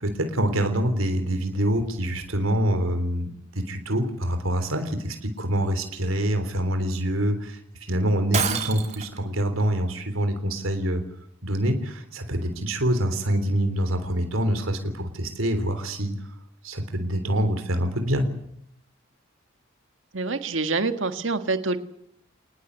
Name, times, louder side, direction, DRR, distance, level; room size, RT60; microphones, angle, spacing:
voice 1, 0.0-7.6 7.9-11.0 11.4-16.1 16.6-18.3, right 1 dB, 85° right, 7 dB, 3.5 m, -25 dB
Shatter, 8.3-9.2, right 6 dB, 35° right, 2.8 m, -27 dB
voice 2, 20.1-21.8, right 3 dB, 70° right, 8 dB, 1.8 m, -26 dB
25.5 x 20.0 x 8.2 m, 0.72 s
head